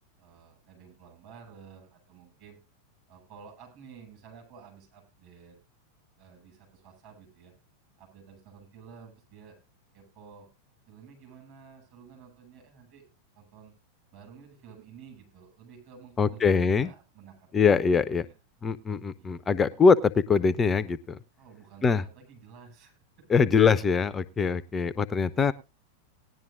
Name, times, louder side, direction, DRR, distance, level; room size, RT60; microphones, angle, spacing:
voice 1, 0.2-2.6 3.1-5.6 6.2-7.5 8.0-9.6 9.9-10.5 10.9-13.0 13.3-13.7 14.1-17.5 18.1-18.4 19.2-19.3 21.4-23.3, right 6 dB, 45° right, 1 dB, 6.8 m, -52 dB
voice 2, 16.2-16.9 17.5-18.3 18.6-21.2 21.8-22.0 23.3-25.5, left 5 dB, 20° left, 17 dB, 0.5 m, -23 dB
18.5 x 10.5 x 2.5 m, 0.27 s
figure-of-eight pair, 90°, 0 cm